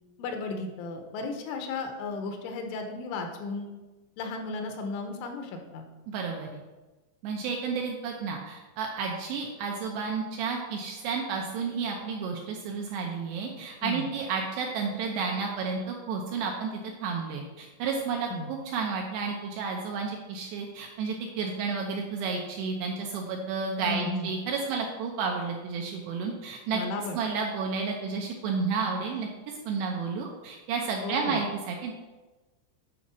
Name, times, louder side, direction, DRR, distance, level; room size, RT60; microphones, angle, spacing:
voice 1, 0.2-3.7 4.2-5.9 13.8-14.1 18.3-18.5 23.8-24.3 26.7-27.2 31.0-31.4, left 3 dB, 80° left, 4 dB, 3.3 m, -34 dB
voice 2, 6.1-6.6 7.2-26.8 27.1-31.9, right 5 dB, 80° right, 1 dB, 2.5 m, -31 dB
10.0 x 4.2 x 6.1 m, 1.2 s
omnidirectional pair, 5.6 m